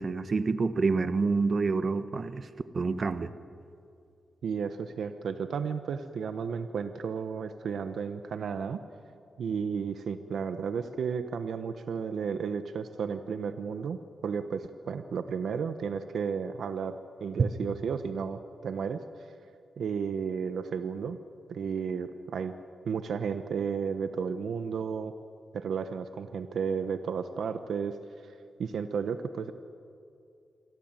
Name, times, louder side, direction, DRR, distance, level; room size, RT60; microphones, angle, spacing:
voice 1, 0.0-2.5 2.7-3.3, right 4 dB, 45° right, 11 dB, 1.3 m, -27 dB
voice 2, 4.4-8.8 9.4-19.3 19.8-21.2 21.5-22.5 22.9-25.1 25.5-28.0 28.2-28.3 28.6-29.5, right 6 dB, 80° right, 9 dB, 1.1 m, -33 dB
28.0 x 23.0 x 9.1 m, 2.5 s
wide cardioid pair, 105°, 0 cm